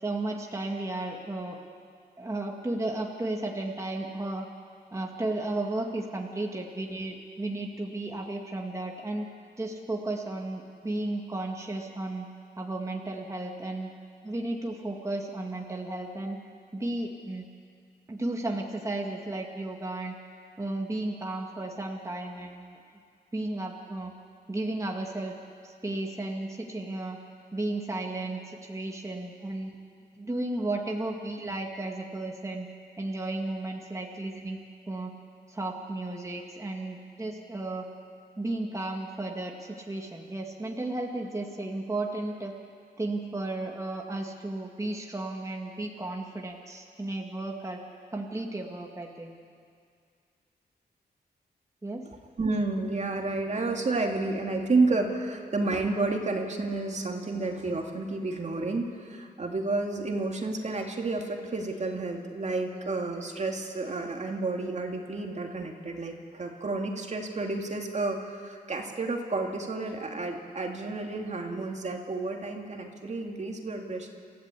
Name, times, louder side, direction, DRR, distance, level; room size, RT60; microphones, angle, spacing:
voice 1, 0.0-1.6 2.2-4.5 4.9-9.3 9.6-12.3 12.6-13.9 14.2-16.4 16.7-17.5 18.1-20.1 20.6-22.8 23.3-24.1 24.5-25.3 25.6-27.2 27.5-29.8 30.2-32.7 33.0-34.6 34.9-35.1 35.5-37.9 38.4-42.5 43.0-47.8 48.1-49.4 51.8-52.0, right 2 dB, 20° right, 0 dB, 2.1 m, -34 dB
voice 2, 52.4-74.1, right 3 dB, 45° right, 2 dB, 2.4 m, -30 dB
27.5 x 15.0 x 8.4 m, 2.2 s
cardioid pair, 95°, 17 cm